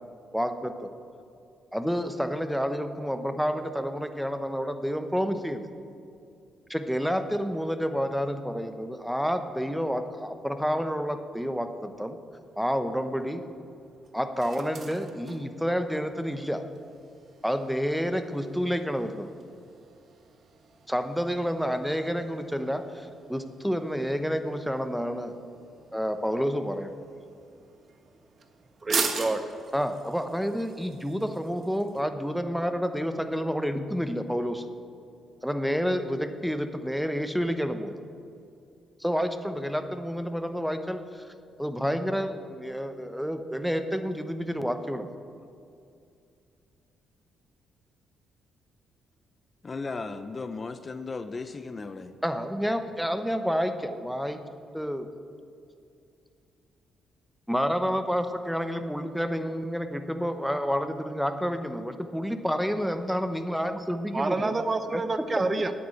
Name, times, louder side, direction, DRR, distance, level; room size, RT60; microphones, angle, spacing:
voice 1, 0.3-0.9 1.7-5.7 6.7-12.2 12.6-13.4 14.1-16.6 17.4-19.3 20.9-25.3 25.9-26.9 29.7-34.7 35.4-38.0 39.0-41.3 41.6-45.1 52.2-54.4 54.7-55.1 57.5-64.5 64.9-65.0, equal, ahead, 8 dB, 0.9 m, -29 dB
sound 1, 12.4-32.0, right 5 dB, 50° right, 1.4 m, -41 dB
voice 2, 28.8-29.5 64.1-65.7, right 3 dB, 25° right, 10 dB, 0.7 m, -28 dB
voice 3, 49.6-52.1, left 4 dB, 30° left, 11 dB, 0.6 m, -36 dB
9.5 x 9.2 x 8.8 m, 2.5 s
cardioid pair, 90°, 0 cm